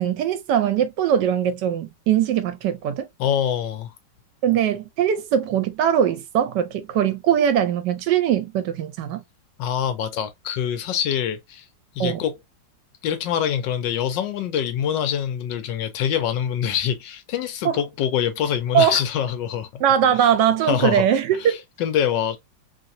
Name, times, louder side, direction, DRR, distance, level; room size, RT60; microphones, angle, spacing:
voice 1, 0.0-3.1 4.4-9.2 12.0-12.2 17.6-17.8 18.7-19.0 19.8-21.6, right 9 dB, 75° right, 1.1 m, -21 dB
voice 2, 3.2-3.9 9.6-11.7 11.9-12.3 13.0-19.8 20.2-20.3 20.6-21.1 21.4-22.4, left 9 dB, 85° left, 1.3 m, -25 dB
3.1 x 2.8 x 2.5 m
omnidirectional pair, 2.0 m